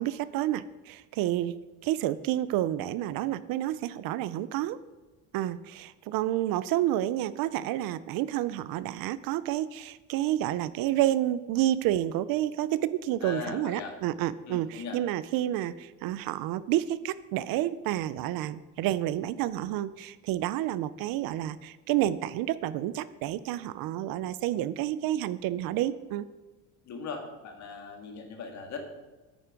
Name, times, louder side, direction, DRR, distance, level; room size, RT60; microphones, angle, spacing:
voice 1, 0.0-1.6 1.8-4.8 5.3-26.3, right 13 dB, 60° right, 16 dB, 0.5 m, -29 dB
voice 2, 13.2-13.9 14.5-15.0 26.9-28.8, left 5 dB, 40° left, 4 dB, 1.9 m, -39 dB
10.0 x 9.2 x 5.1 m, 1.2 s
cardioid pair, 175°, 41 cm